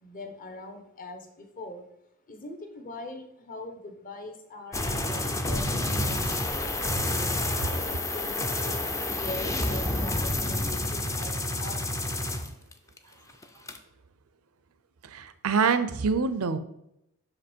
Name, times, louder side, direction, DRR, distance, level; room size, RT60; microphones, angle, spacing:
voice 1, 0.0-1.9 2.3-7.1 7.6-8.8 9.1-11.8, left 2 dB, 40° left, 6 dB, 1.0 m, -42 dB
sound 1, 4.7-13.0 13.3-13.8, left 2 dB, 15° left, 0.5 m, -29 dB
voice 2, 15.0-16.6, right 5 dB, 80° right, 12 dB, 0.6 m, -26 dB
6.1 x 5.2 x 4.4 m, 0.81 s
head